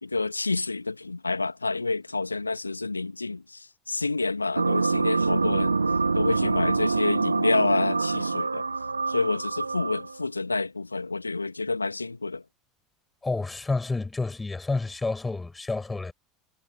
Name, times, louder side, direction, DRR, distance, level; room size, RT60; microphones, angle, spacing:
voice 1, 0.0-5.8 6.1-8.7 9.1-12.4, left 3 dB, 85° left, 1.8 m, -28 dB
sound 1, 4.6-10.2, right 4 dB, 85° right, 1.8 m, -25 dB
voice 2, 13.2-16.1, left 3 dB, 15° left, 6.3 m, -29 dB
figure-of-eight pair, 70°, 0 cm